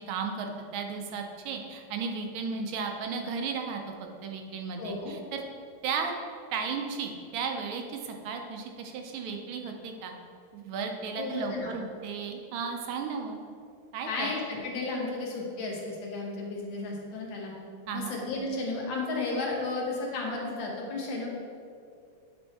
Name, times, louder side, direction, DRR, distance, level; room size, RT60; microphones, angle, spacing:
voice 1, 0.1-3.8 4.2-5.4 5.8-6.1 6.5-10.1 10.5-13.4 13.9-14.3 17.9-18.2, right 5 dB, 85° right, 3 dB, 1.5 m, -34 dB
voice 2, 4.8-5.1 11.2-11.7 14.1-17.5 17.9-21.3, left 3 dB, 75° left, -2 dB, 1.8 m, -33 dB
8.1 x 3.4 x 4.1 m, 2.4 s
omnidirectional pair, 2.2 m